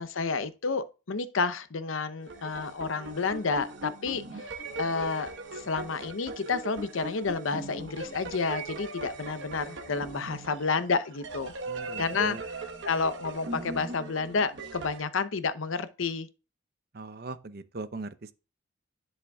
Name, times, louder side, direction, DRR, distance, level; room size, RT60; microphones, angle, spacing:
voice 1, 0.0-11.5 12.0-12.4 12.9-16.3, left 4 dB, 85° left, 0.7 m, -30 dB
sound 1, 2.2-15.0, right 2 dB, 70° right, 1.1 m, -40 dB
voice 2, 11.7-12.4 16.9-18.3, right 3 dB, 50° right, 0.6 m, -40 dB
10.5 x 6.6 x 2.3 m
head